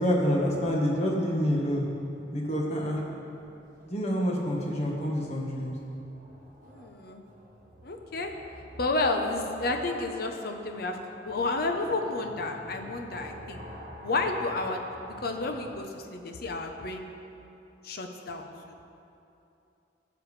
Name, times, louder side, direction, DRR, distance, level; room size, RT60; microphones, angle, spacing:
voice 1, 0.0-1.9 2.3-3.0 3.9-5.8, equal, 35° left, -2 dB, 1.4 m, -27 dB
sound 1, 1.3-15.8, equal, 45° right, 1.3 m, -49 dB
voice 2, 6.6-7.2 7.8-8.3 8.8-11.0 11.2-13.6 14.0-17.1 17.8-18.8, left 2 dB, 55° left, 4 dB, 0.8 m, -31 dB
15.0 x 7.0 x 3.3 m, 2.8 s
head